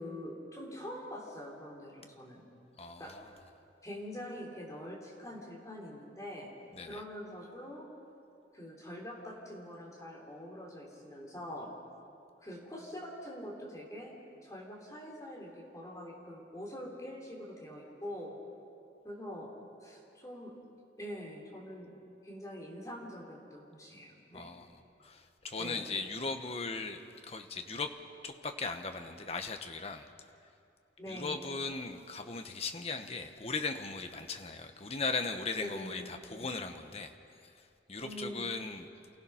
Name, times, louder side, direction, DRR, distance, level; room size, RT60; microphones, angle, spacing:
voice 1, 0.0-2.4 3.0-3.2 3.8-6.5 6.8-7.9 8.5-11.7 12.4-14.2 14.4-18.4 19.0-19.5 19.8-20.5 21.0-21.9 22.2-24.5 25.6-25.8 31.0-31.4 35.6-36.1 36.3-36.5 38.0-38.6, equal, 20° left, -3 dB, 3.5 m, -44 dB
voice 2, 2.8-3.3 6.7-7.0 24.3-24.7 25.0-27.9 28.2-30.1 31.1-37.1 37.4-37.5 37.9-38.9, left 4 dB, 35° left, 7 dB, 1.0 m, -38 dB
29.0 x 16.0 x 5.7 m, 2.5 s
head